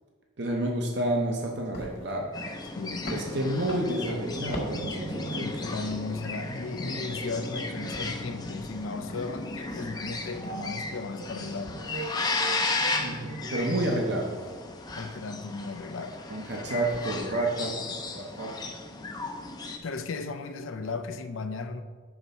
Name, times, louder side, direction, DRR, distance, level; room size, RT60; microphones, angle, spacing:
voice 1, 0.4-2.3 3.1-5.5 13.0-14.3 16.3-17.7 18.1-18.5, right 1 dB, 55° right, 0 dB, 0.7 m, -29 dB
sound 1, 1.7-6.3 6.7-11.2 11.5-13.8 14.3-14.6 14.9-16.3 16.6-17.5 17.9-18.1 19.1-19.4 19.7-20.2 20.4-20.5 20.9-21.2, equal, 45° left, 1.2 m, -44 dB
sound 2, 2.3-19.8, left 3 dB, 20° left, 0.5 m, -35 dB
voice 2, 2.8-3.3 5.4-11.8 15.0-16.2 19.8-21.8, left 4 dB, 80° left, 8 dB, 0.5 m, -35 dB
sound 3, 3.7-15.0, right 5 dB, 70° right, 0.4 m, -43 dB
5.9 x 4.0 x 5.4 m, 1.5 s
head